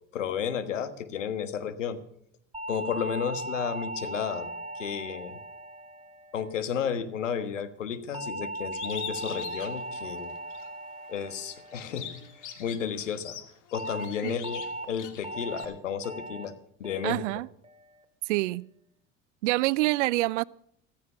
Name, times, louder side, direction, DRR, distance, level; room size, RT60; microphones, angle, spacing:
voice 1, 0.1-2.0 2.7-5.4 6.3-10.4 11.1-12.2 12.6-13.4 13.7-16.5 16.8-17.2, left 7 dB, 90° left, 1.5 m, -32 dB
sound 1, 2.5-7.0 8.1-12.6 13.7-14.0 14.4-14.8 15.2-15.6 16.0-16.4 16.8-17.2 17.6-18.0, right 1 dB, 15° right, 2.3 m, -38 dB
Bird, 8.7-10.7 11.1-15.6, left 10 dB, 55° left, 2.4 m, -43 dB
voice 2, 17.0-17.5 18.3-18.7 19.4-20.4, right 20 dB, 75° right, 0.6 m, -26 dB
15.0 x 14.0 x 5.6 m
hypercardioid pair, 75°, 36 cm